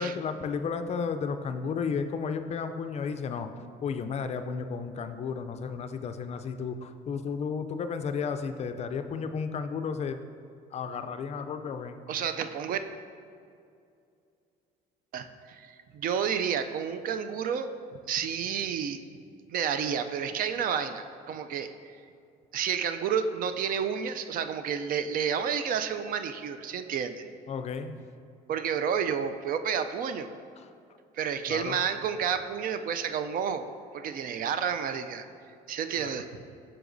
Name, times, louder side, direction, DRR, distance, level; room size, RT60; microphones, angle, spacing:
voice 1, 0.0-3.5 3.8-10.2 10.7-12.0 27.5-28.0 30.6-30.7 31.5-31.8 36.0-36.1, left 5 dB, 40° left, 9 dB, 0.4 m, -33 dB
voice 2, 12.1-12.8 15.1-17.7 18.1-19.0 19.5-21.9 22.5-27.3 28.5-30.3 31.1-33.7 33.9-35.3 35.7-36.3, right 7 dB, 55° right, 9 dB, 0.4 m, -30 dB
7.7 x 5.9 x 2.6 m, 2.4 s
cardioid pair, 110°, 17 cm